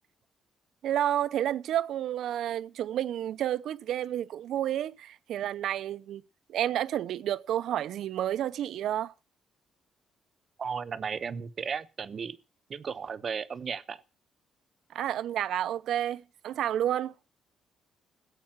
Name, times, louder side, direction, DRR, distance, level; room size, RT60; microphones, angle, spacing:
voice 1, 0.8-6.2 6.5-9.1 14.9-17.1, right 11 dB, 75° right, 0.7 m, -30 dB
voice 2, 10.6-12.4 12.7-14.0, right 6 dB, 45° right, 0.9 m, -35 dB
15.5 x 8.5 x 5.9 m
cardioid pair, 90°, 0 cm